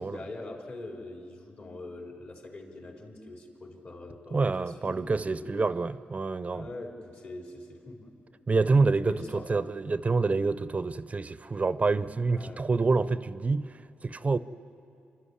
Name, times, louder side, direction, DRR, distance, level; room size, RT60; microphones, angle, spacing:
voice 1, 0.0-5.5 6.5-8.1 8.9-9.5 12.3-12.7, left 2 dB, 55° left, 4.1 m, -43 dB
voice 2, 4.3-6.7 8.5-14.4, right 3 dB, 35° right, 0.5 m, -27 dB
26.5 x 12.5 x 9.8 m
cardioid pair, 70°, 4 cm